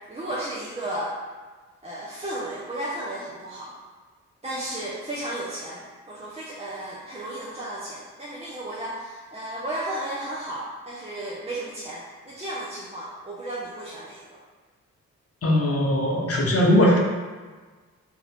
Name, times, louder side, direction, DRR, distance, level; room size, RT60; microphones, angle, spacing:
voice 1, 0.1-1.1 1.8-3.8 4.4-14.4, right 1 dB, 15° right, -7 dB, 0.6 m, -34 dB
voice 2, 15.4-17.0, left 1 dB, 40° left, -1 dB, 0.8 m, -20 dB
2.7 x 2.4 x 3.4 m, 1.4 s
hypercardioid pair, 40°, 37 cm